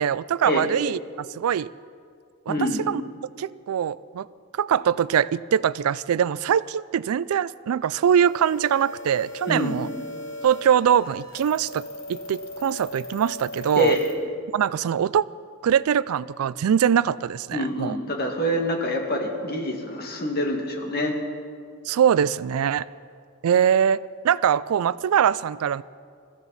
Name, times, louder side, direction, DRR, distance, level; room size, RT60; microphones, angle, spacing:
voice 1, 0.0-1.7 2.5-3.0 3.4-4.3 4.5-9.9 10.4-11.8 12.1-14.0 14.5-15.2 15.6-18.0 21.9-22.9 23.4-25.8, right 8 dB, 80° right, 19 dB, 0.3 m, -22 dB
voice 2, 2.5-2.8 9.5-9.7 13.8-14.0 17.5-21.2, equal, 45° left, 2 dB, 2.0 m, -26 dB
sound 1, 7.9-14.1, left 2 dB, 65° left, 2.5 m, -38 dB
22.0 x 14.5 x 4.1 m, 2.2 s
head